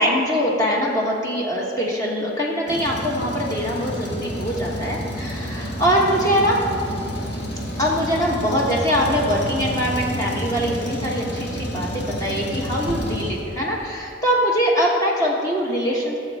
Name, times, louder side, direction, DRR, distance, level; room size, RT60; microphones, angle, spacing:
voice 1, 0.0-6.6 7.8-16.2, equal, 20° left, -3 dB, 1.1 m, -22 dB
Truck, 2.7-13.9, equal, 70° left, 1.7 m, -29 dB
17.5 x 7.1 x 3.5 m, 2.6 s
head